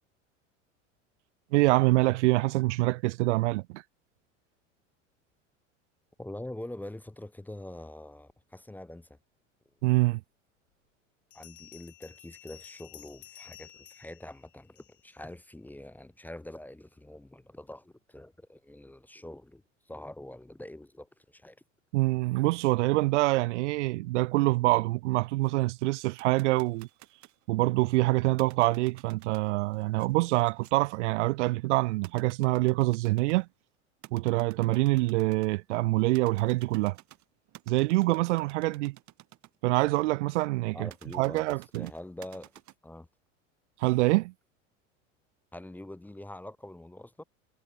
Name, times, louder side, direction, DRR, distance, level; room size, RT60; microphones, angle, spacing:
voice 1, 1.5-3.8 9.8-10.2 21.9-26.9 27.5-33.5 34.1-37.0 37.7-39.0 39.6-41.9 43.8-44.3, right 20 dB, 65° right, 0.5 m, -25 dB
voice 2, 6.2-9.1 11.3-19.6 19.9-21.6 40.7-42.5 42.8-43.1 45.5-47.2, left 1 dB, 5° left, 0.7 m, -44 dB
Bell, 11.3-15.2, left 14 dB, 75° left, 6.6 m, -52 dB
sound 1, 25.4-27.4 28.3-33.5 34.0-35.6 36.1-39.5 40.9-42.7, right 16 dB, 45° right, 7.9 m, -53 dB
hypercardioid pair, 85°, 38 cm